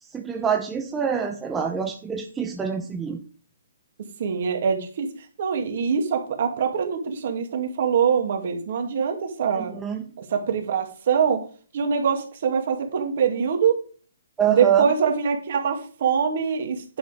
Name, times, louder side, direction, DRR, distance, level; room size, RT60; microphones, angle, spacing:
voice 1, 0.1-3.2 9.6-10.0 14.4-14.8, right 8 dB, 10° right, 3 dB, 0.7 m, -25 dB
voice 2, 4.2-5.1 5.4-9.7 10.3-11.4 11.7-13.8 14.5-17.0, right 6 dB, 50° right, 4 dB, 2.5 m, -24 dB
10.5 x 5.8 x 5.3 m, 0.40 s
hypercardioid pair, 160°, 0 cm